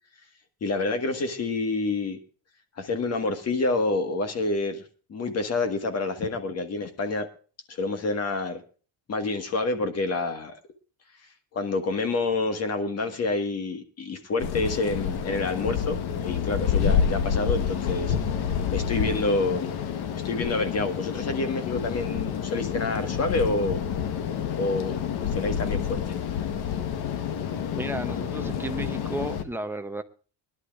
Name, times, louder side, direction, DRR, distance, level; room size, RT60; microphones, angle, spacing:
voice 1, 0.6-2.2 2.8-4.8 5.1-7.3 7.7-8.6 9.1-10.6 11.5-18.2 18.7-19.7 20.2-23.8 24.6-25.0 25.3-26.2, left 3 dB, 30° left, 1.6 m, -28 dB
sound 1, 14.4-29.4, left 8 dB, 50° left, 1.3 m, -28 dB
voice 2, 27.7-30.0, right 2 dB, 5° right, 0.6 m, -33 dB
24.0 x 11.5 x 2.4 m
cardioid pair, 175°, 49 cm